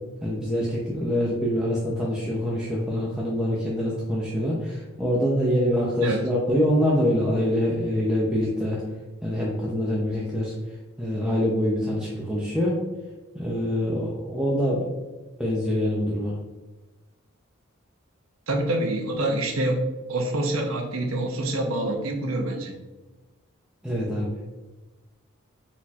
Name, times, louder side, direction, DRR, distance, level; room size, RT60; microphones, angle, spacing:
voice 1, 0.2-8.8 9.2-10.5 11.0-12.8 13.3-14.9 15.4-16.3 23.8-24.4, equal, 5° right, -6 dB, 0.5 m, -25 dB
voice 2, 18.5-19.8 20.1-22.7, right 1 dB, 85° right, 2 dB, 0.8 m, -26 dB
4.2 x 4.2 x 2.4 m, 1.1 s
head